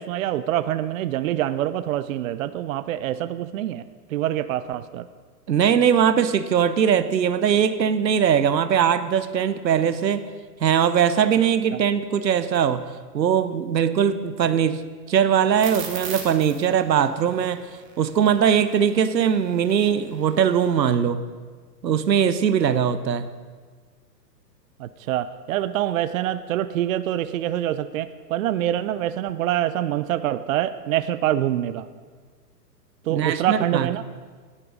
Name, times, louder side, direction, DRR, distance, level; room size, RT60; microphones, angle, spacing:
voice 1, 0.0-3.8 4.1-5.1 24.8-31.9 33.0-34.0, right 12 dB, 55° right, 13 dB, 0.5 m, -25 dB
voice 2, 5.5-10.3 10.6-12.8 13.1-17.7 18.0-21.2 21.8-23.3 33.1-33.9, right 8 dB, 85° right, 13 dB, 0.8 m, -21 dB
sound 1, 15.6-20.8, right 6 dB, 25° right, 2.0 m, -38 dB
10.0 x 9.5 x 4.9 m, 1.5 s
hypercardioid pair, 120°, 49 cm